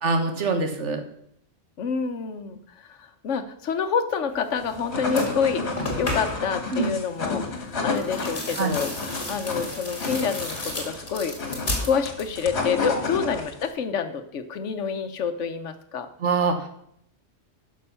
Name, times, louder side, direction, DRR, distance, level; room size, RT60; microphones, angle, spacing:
voice 1, 0.0-1.0 6.7-6.9 8.6-8.8 16.2-16.6, right 4 dB, 70° right, 6 dB, 1.5 m, -24 dB
voice 2, 1.8-8.9 9.3-11.5 11.8-16.1, left 6 dB, 75° left, 9 dB, 1.2 m, -28 dB
sound 1, 4.6-13.7, left 3 dB, 60° left, 1.9 m, -31 dB
sound 2, 4.6-4.8 5.1-6.6 7.9-12.5 12.8-13.4, left 2 dB, 45° left, 2.4 m, -33 dB
11.0 x 6.1 x 5.6 m, 0.71 s
omnidirectional pair, 1.3 m